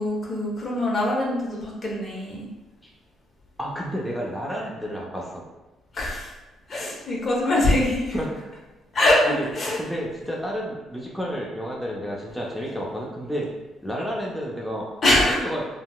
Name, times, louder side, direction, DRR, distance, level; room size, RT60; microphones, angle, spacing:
voice 1, 0.0-2.5 5.9-6.3 6.7-8.1 8.9-9.3 9.5-9.8 15.0-15.4, left 1 dB, 45° left, -3 dB, 0.9 m, -23 dB
voice 2, 3.6-5.4 7.4-7.5 8.1-8.3 9.2-9.5 9.8-13.5 13.8-15.6, equal, ahead, -3 dB, 0.6 m, -31 dB
3.7 x 2.1 x 2.2 m, 1.1 s
supercardioid pair, 60°, 0 cm